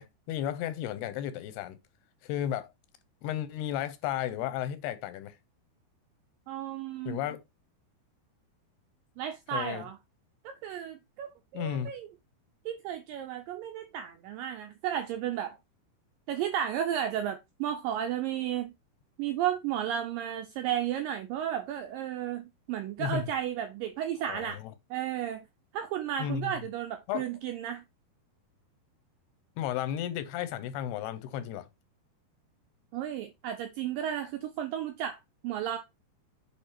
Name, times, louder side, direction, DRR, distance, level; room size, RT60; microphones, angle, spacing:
voice 1, 0.0-1.8 2.2-2.7 3.2-5.4 7.1-7.4 9.5-9.9 11.5-11.9 23.0-23.3 24.3-24.7 26.2-26.5 27.1-27.2 29.6-31.7, left 10 dB, 85° left, 2.6 m, -33 dB
voice 2, 6.5-7.2 9.2-10.0 10.4-12.1 12.7-15.6 16.3-18.7 19.2-24.6 24.9-25.4 25.7-27.8 32.9-35.2 35.4-35.8, right 10 dB, 80° right, 2.0 m, -33 dB
8.3 x 3.3 x 4.4 m
omnidirectional pair, 4.7 m